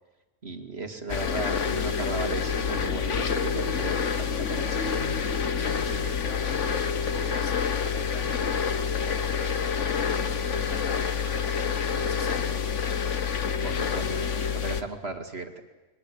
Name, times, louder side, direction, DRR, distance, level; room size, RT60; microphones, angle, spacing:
voice 1, 0.4-5.0 13.6-15.6, right 3 dB, 40° right, 5 dB, 2.5 m, -36 dB
sound 1, 1.1-14.8, left 6 dB, 50° left, 1.5 m, -27 dB
voice 2, 5.6-8.4 8.7-12.5, left 1 dB, 70° left, 2 dB, 5.0 m, -43 dB
30.0 x 22.5 x 8.8 m, 1.1 s
omnidirectional pair, 1.7 m